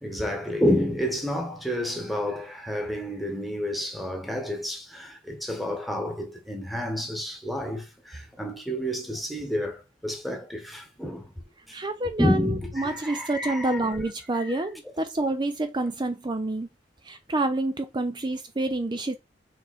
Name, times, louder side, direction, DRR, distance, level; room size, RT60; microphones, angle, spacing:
voice 1, 0.0-11.3 11.7-11.8 12.2-13.9 14.3-14.6, equal, ahead, 1.6 m, -29 dB
voice 2, 11.7-16.7 17.0-19.2, right 2 dB, 25° right, 0.6 m, -28 dB
5.9 x 4.5 x 4.3 m
head